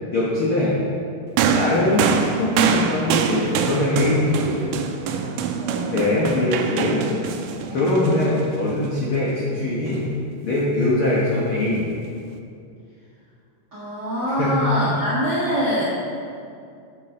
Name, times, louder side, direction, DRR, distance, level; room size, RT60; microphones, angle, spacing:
voice 1, 0.1-0.8 1.5-4.7 5.9-7.1 7.7-10.1 10.4-11.9 14.4-15.0, left 2 dB, 65° left, -6 dB, 1.3 m, -22 dB
sound 1, 1.4-8.9 9.9-10.0, right 6 dB, 85° right, 1.9 m, -24 dB
voice 2, 5.6-5.9 7.6-7.8 13.7-15.9, equal, 45° right, -9 dB, 1.4 m, -24 dB
8.0 x 6.9 x 4.9 m, 2.4 s
omnidirectional pair, 4.1 m